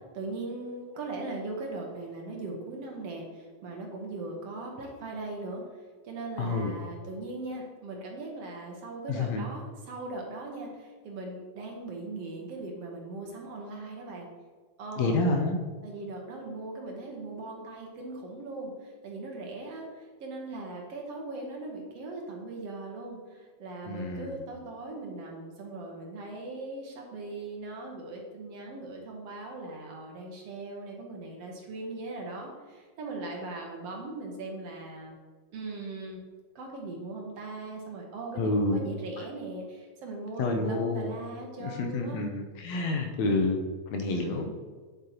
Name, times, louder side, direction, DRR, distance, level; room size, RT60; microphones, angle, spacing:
voice 1, 0.1-5.6 6.0-14.3 14.8-15.2 15.8-35.2 35.5-36.2 36.6-42.2 44.1-44.5, right 2 dB, 65° right, 0 dB, 2.0 m, -39 dB
voice 2, 6.4-6.7 9.1-9.4 15.0-15.6 23.9-24.4 38.3-38.8 39.2-39.3 40.4-41.1 41.6-43.6 43.9-44.5, left 2 dB, 70° left, 4 dB, 1.9 m, -28 dB
8.5 x 7.6 x 2.9 m, 1.5 s
omnidirectional pair, 3.4 m